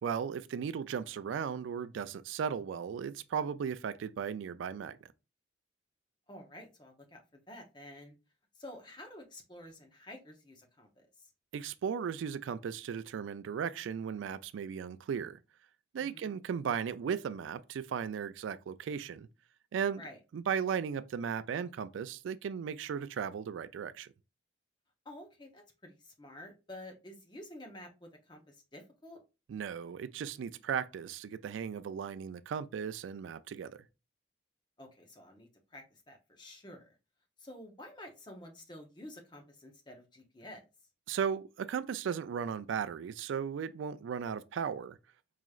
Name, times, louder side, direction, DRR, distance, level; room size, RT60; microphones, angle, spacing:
voice 1, 0.0-5.1 11.5-15.4 15.9-19.3 19.7-20.0 20.3-24.1 29.5-33.8 41.1-45.0, right 7 dB, 90° right, 0.3 m, -36 dB
voice 2, 6.3-7.2 7.5-8.1 8.6-11.3 16.1-16.4 20.0-20.2 25.0-29.2 34.8-36.9 37.4-40.6, left 1 dB, 25° left, 0.7 m, -50 dB
4.7 x 3.0 x 2.3 m
head